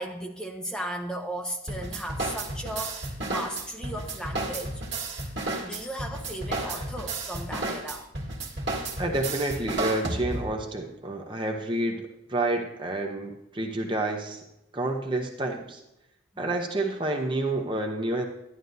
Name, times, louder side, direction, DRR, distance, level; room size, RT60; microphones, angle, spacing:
voice 1, 0.0-4.8 5.6-8.1 16.3-16.4, right 1 dB, 5° left, 1 dB, 1.0 m, -36 dB
sound 1, 1.7-10.6, right 2 dB, 65° right, 1.8 m, -32 dB
voice 2, 9.0-14.4 14.7-15.8 16.4-18.3, right 2 dB, 25° right, 2 dB, 0.8 m, -29 dB
11.0 x 11.0 x 2.7 m, 0.87 s
head